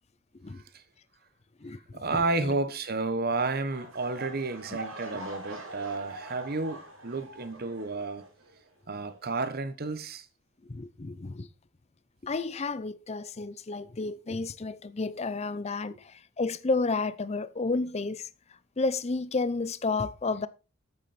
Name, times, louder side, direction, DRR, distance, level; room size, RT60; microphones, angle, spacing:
voice 1, 0.5-0.8 1.9-8.3 8.9-10.3, right 3 dB, 45° right, 1.1 m, -31 dB
voice 2, 1.6-2.2 10.7-11.5 12.2-18.3 18.8-20.5, left 3 dB, 30° left, 0.5 m, -31 dB
sound 1, 3.7-8.7 9.0-9.3 9.9-10.0, right 2 dB, 70° right, 3.3 m, -44 dB
8.9 x 8.4 x 4.2 m
head